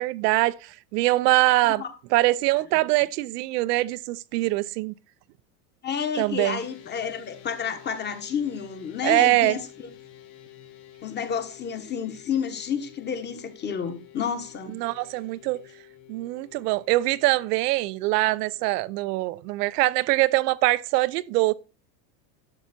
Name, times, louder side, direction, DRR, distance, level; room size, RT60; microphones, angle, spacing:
voice 1, 0.0-1.8 2.1-4.9 6.2-6.6 9.0-9.6 14.7-15.6 16.1-21.5, right 19 dB, 75° right, 0.8 m, -23 dB
voice 2, 5.8-9.9 11.0-14.8, left 7 dB, 20° left, 1.4 m, -30 dB
sound 1, 6.6-18.7, left 12 dB, 85° left, 2.4 m, -50 dB
11.5 x 7.2 x 4.3 m
supercardioid pair, 150°, 48 cm